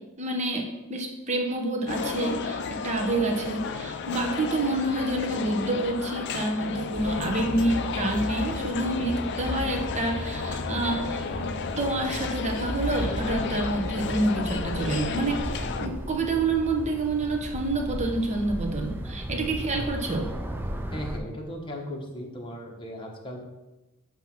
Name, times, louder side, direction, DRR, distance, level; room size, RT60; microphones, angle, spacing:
voice 1, 0.2-20.3, right 2 dB, 30° right, 2 dB, 0.9 m, -28 dB
sound 1, 1.9-15.9, left 5 dB, 50° left, 0.4 m, -33 dB
sound 2, 6.9-21.2, equal, 10° right, 0.4 m, -35 dB
voice 2, 20.9-23.4, equal, 20° left, 0 dB, 1.0 m, -37 dB
7.9 x 3.0 x 5.8 m, 1.1 s
head